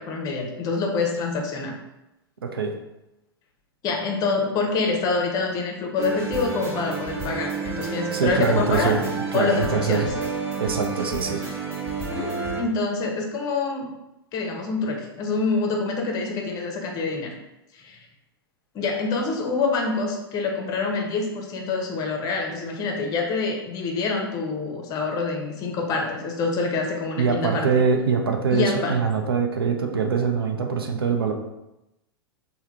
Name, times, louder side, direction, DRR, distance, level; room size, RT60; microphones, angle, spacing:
voice 1, 0.0-1.8 3.8-9.0 9.3-10.1 12.1-13.9 14.3-17.3 17.7-18.0 18.7-27.8 28.5-29.0, left 4 dB, 30° left, 1 dB, 0.7 m, -26 dB
sound 1, 6.0-12.6, right 4 dB, 40° right, 1.1 m, -30 dB
voice 2, 8.1-10.1 10.6-11.4 27.2-31.3, right 5 dB, 70° right, 3 dB, 0.6 m, -23 dB
3.4 x 2.3 x 4.4 m, 0.92 s
figure-of-eight pair, 95°, 13 cm